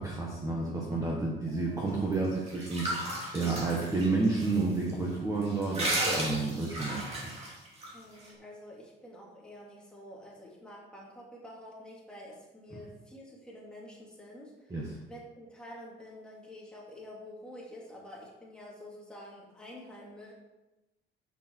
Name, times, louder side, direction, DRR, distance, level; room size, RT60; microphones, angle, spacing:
voice 1, 0.0-7.3 12.7-12.8 14.7-15.0, right 3 dB, 15° right, -3 dB, 1.3 m, -31 dB
sound 1, 2.1-4.6 4.9-5.0 5.4-7.9, right 1 dB, 30° right, 2.6 m, -34 dB
voice 2, 7.9-14.8 15.1-20.3, left 1 dB, 5° left, -4 dB, 2.3 m, -48 dB
9.7 x 7.4 x 4.5 m, 1.0 s
cardioid pair, 170°, 20 cm